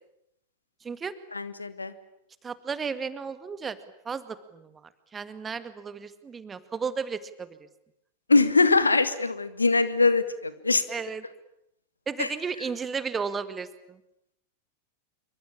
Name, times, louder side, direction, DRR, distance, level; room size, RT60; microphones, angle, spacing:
voice 1, 0.8-1.1 2.4-3.8 4.0-7.5 10.9-11.2 12.1-14.0, right 5 dB, 20° right, 13 dB, 2.0 m, -34 dB
voice 2, 1.3-1.9 8.3-10.8 12.2-12.3, left 3 dB, 80° left, 13 dB, 1.9 m, -22 dB
27.5 x 24.5 x 8.8 m, 0.80 s
figure-of-eight pair, 90°, 0 cm